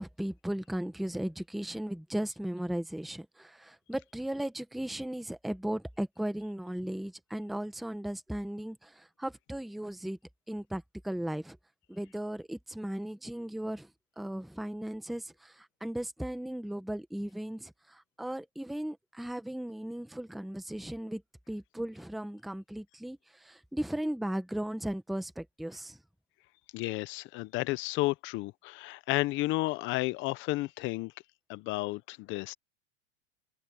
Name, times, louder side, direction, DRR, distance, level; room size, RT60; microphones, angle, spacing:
voice 1, 0.0-8.9 9.2-10.2 10.5-11.6 11.9-13.9 14.2-15.5 15.8-17.7 18.2-21.2 21.5-23.2 23.5-26.0, right 1 dB, ahead, 0.9 m, -36 dB
voice 2, 26.7-31.1 31.5-32.5, left 20 dB, 30° left, 0.6 m, -32 dB
supercardioid pair, 145°, 38 cm